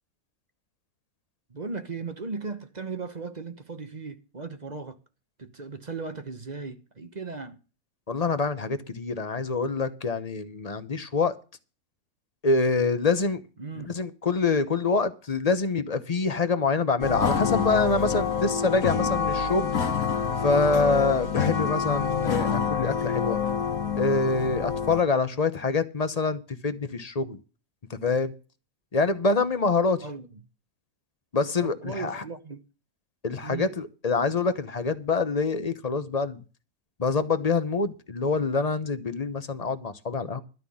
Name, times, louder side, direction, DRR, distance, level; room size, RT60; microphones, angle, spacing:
voice 1, 1.5-5.0 5.4-7.6 13.6-13.9 30.0-30.4 31.6-32.6 33.4-33.7, right 4 dB, 30° right, 1.0 m, -37 dB
voice 2, 8.1-11.3 12.4-13.4 13.9-19.7 20.4-23.4 23.9-27.4 27.9-28.3 28.9-30.0 31.3-32.2 33.2-36.4 37.0-40.4, left 4 dB, 30° left, 0.8 m, -25 dB
sound 1, 17.0-25.0, left 6 dB, 65° left, 1.6 m, -27 dB
12.5 x 5.9 x 8.5 m
omnidirectional pair, 1.7 m